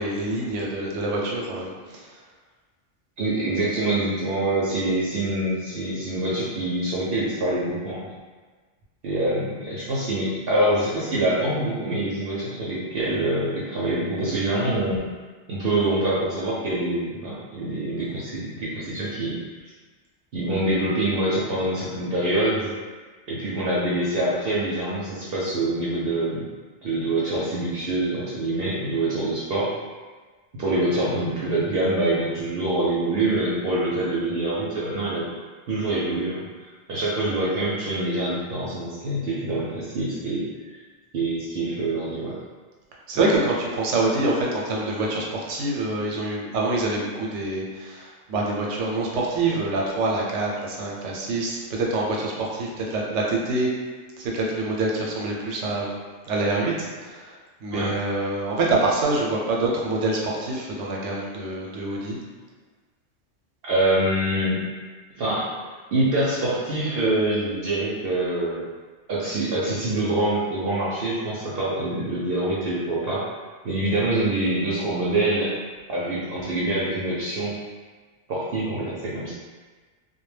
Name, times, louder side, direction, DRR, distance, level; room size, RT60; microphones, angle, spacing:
voice 1, 0.0-2.1 43.1-53.7 54.2-56.0 56.3-56.7 57.0-57.3 57.6-62.2, right 2 dB, 90° right, -2 dB, 0.9 m, -26 dB
voice 2, 3.2-8.1 9.0-15.0 15.5-19.4 20.3-22.7 23.3-26.4 26.8-29.7 30.6-35.3 35.7-40.8 41.1-42.4 57.7-57.9 63.6-64.6 65.1-65.5 65.9-68.6 69.1-73.3 73.6-75.5 75.9-77.5 78.3-79.3, right 1 dB, 65° right, -7 dB, 0.7 m, -25 dB
2.2 x 2.1 x 3.2 m, 1.4 s
omnidirectional pair, 1.2 m